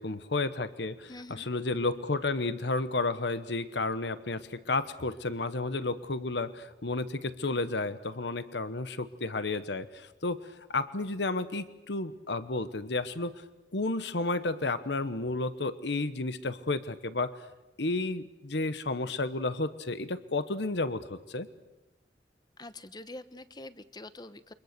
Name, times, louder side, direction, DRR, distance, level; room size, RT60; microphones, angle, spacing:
voice 1, 0.0-10.4 10.7-13.4 13.7-17.4 17.8-21.5, left 3 dB, 70° left, 13 dB, 1.1 m, -32 dB
voice 2, 1.1-1.5 22.6-24.5, left 2 dB, 25° left, 13 dB, 1.0 m, -45 dB
28.5 x 24.5 x 6.8 m, 1.0 s
head